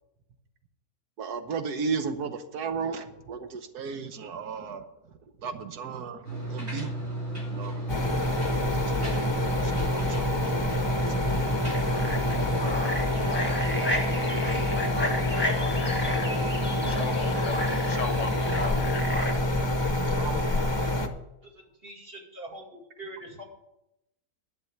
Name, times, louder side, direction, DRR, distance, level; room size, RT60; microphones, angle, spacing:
voice 1, 1.2-4.8 5.4-6.9 7.5-7.7 9.0-9.3 9.6-11.0 20.1-20.4, right 5 dB, 85° right, 8 dB, 1.5 m, -35 dB
sound 1, 6.2-12.7, right 1 dB, 60° right, 3.4 m, -33 dB
sound 2, 7.9-21.1, left 1 dB, 25° left, 0.7 m, -27 dB
sound 3, 11.7-19.3, left 1 dB, 5° left, 1.5 m, -33 dB
voice 2, 16.8-19.5, left 5 dB, 60° left, 10 dB, 1.0 m, -37 dB
voice 3, 21.5-22.7 23.0-23.4, right 1 dB, 40° right, 0 dB, 2.6 m, -43 dB
11.0 x 6.9 x 7.7 m, 0.88 s
omnidirectional pair, 1.6 m